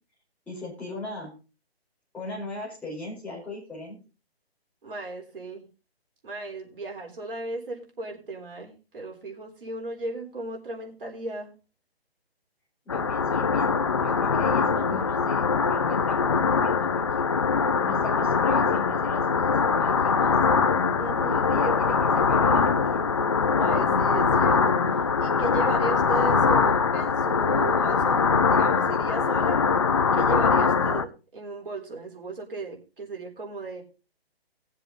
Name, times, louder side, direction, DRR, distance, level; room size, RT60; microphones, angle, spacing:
voice 1, 0.5-1.3 2.1-4.0 12.8-17.0 17.8-20.4 21.2-23.0, left 2 dB, 5° left, -6 dB, 4.6 m, -39 dB
voice 2, 4.8-5.7 6.2-11.5 21.0-21.4 23.5-24.8 25.2-28.2 28.5-29.6 30.1-33.8, right 2 dB, 55° right, 1 dB, 3.9 m, -35 dB
sound 1, 12.9-31.0, left 5 dB, 30° left, 0.5 m, -22 dB
19.5 x 7.5 x 3.8 m, 0.32 s
figure-of-eight pair, 145°, 32 cm